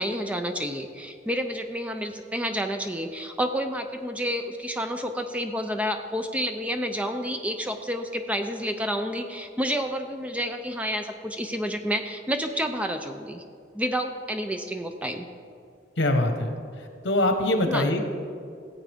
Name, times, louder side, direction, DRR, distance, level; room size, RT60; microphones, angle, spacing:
voice 1, 0.0-13.4 13.7-15.3 17.7-17.9, equal, 5° right, 6 dB, 0.4 m, -29 dB
voice 2, 16.0-16.5 17.0-18.0, left 1 dB, 70° left, 5 dB, 1.2 m, -23 dB
16.0 x 8.5 x 3.5 m, 2.3 s
head